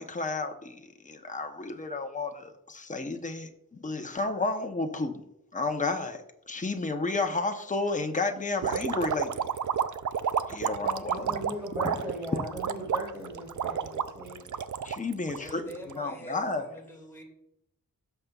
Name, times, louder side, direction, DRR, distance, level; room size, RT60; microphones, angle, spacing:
voice 1, 0.0-5.2 5.5-9.3 10.5-11.3 14.8-15.7 15.9-16.7, left 3 dB, 20° left, 5 dB, 0.8 m, -32 dB
sound 1, 8.6-15.9, right 8 dB, 60° right, 0.5 m, -30 dB
voice 2, 11.1-14.5, equal, 10° right, -6 dB, 3.1 m, -38 dB
voice 3, 11.9-12.2 12.8-13.2 15.2-17.2, equal, 5° left, -2 dB, 2.3 m, -49 dB
17.0 x 6.7 x 2.3 m, 0.82 s
wide cardioid pair, 135°, 35 cm